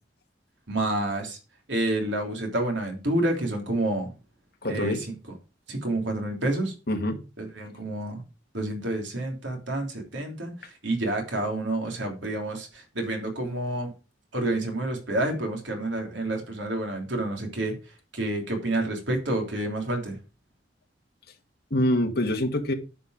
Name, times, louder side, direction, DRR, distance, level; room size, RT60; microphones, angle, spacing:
voice 1, 0.7-1.4 1.7-4.1 4.7-5.1 5.7-6.7 7.4-8.2 8.5-13.9 14.3-17.7 18.1-20.2, right 1 dB, 75° right, 2 dB, 3.2 m, -29 dB
voice 2, 4.6-5.0 6.9-7.2 21.7-22.7, left 1 dB, 55° left, 3 dB, 1.9 m, -25 dB
10.0 x 5.4 x 4.9 m, 0.31 s
head